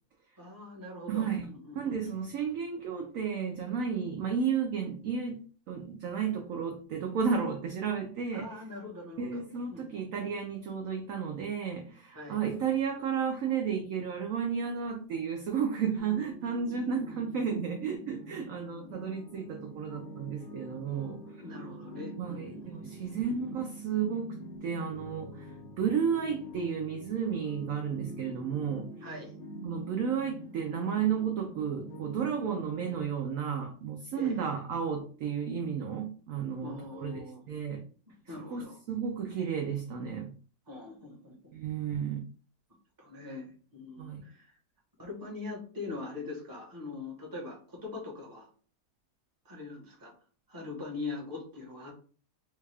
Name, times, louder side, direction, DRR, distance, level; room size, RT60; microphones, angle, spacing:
voice 1, 0.4-1.9 8.3-9.4 9.7-9.8 12.1-12.4 21.4-23.1 29.0-29.4 34.2-34.4 36.6-37.5 38.3-38.8 40.7-41.6 43.0-44.6 45.0-48.5 49.4-50.1 50.5-51.9, left 3 dB, 15° right, 0.8 m, -42 dB
voice 2, 1.1-1.5 1.8-5.4 5.7-8.5 9.2-21.2 22.2-25.5 25.8-28.9 29.6-37.2 37.5-37.8 38.5-40.3 41.5-42.2 44.0-44.2, right 7 dB, 70° right, 0.8 m, -32 dB
sound 1, 16.0-33.0, right 1 dB, 70° left, 1.5 m, -46 dB
3.5 x 2.3 x 3.3 m
omnidirectional pair, 1.9 m